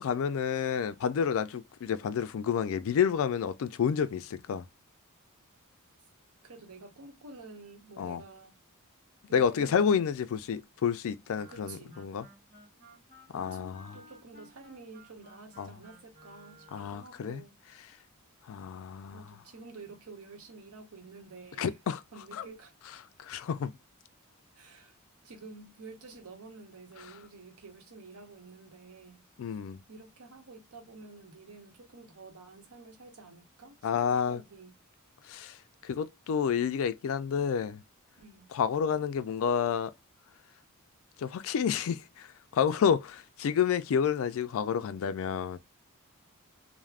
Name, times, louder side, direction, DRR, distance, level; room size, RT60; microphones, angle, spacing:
voice 1, 0.0-4.7 8.0-8.2 9.3-12.3 13.3-14.0 15.6-15.7 16.7-17.4 18.5-19.3 21.6-22.0 22.3-22.4 23.2-23.7 29.4-29.8 33.8-34.4 35.3-35.6 35.8-37.8 38.5-39.9 41.2-42.3 42.5-45.6, left 7 dB, 65° left, 0.3 m, -29 dB
voice 2, 6.4-8.6 9.3-10.2 11.5-12.0 13.3-17.5 19.1-21.8 22.1-22.7 24.5-24.9 25.2-29.2 29.9-34.7 38.2-38.5, right 3 dB, 90° right, 0.8 m, -50 dB
Wind instrument woodwind instrument, 11.3-17.0, right 1 dB, 40° right, 1.2 m, -56 dB
2.4 x 2.1 x 3.2 m
head